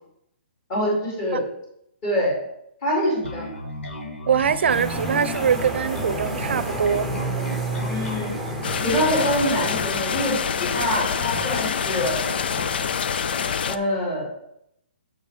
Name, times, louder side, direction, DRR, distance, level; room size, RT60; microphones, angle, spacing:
voice 1, 0.7-1.4 2.0-2.3 2.8-3.5 7.9-8.3 8.8-12.2 13.7-14.3, equal, 30° left, -5 dB, 3.6 m, -25 dB
Bass guitar, 3.2-12.8, left 2 dB, 85° left, 1.8 m, -35 dB
voice 2, 4.3-7.1, right 7 dB, 70° right, 14 dB, 0.7 m, -22 dB
sound 1, 4.7-10.2, right 2 dB, ahead, 1.1 m, -30 dB
sound 2, 8.6-13.8, left 7 dB, 55° left, 0.5 m, -26 dB
7.2 x 5.5 x 5.2 m, 0.77 s
hypercardioid pair, 165°, 6 cm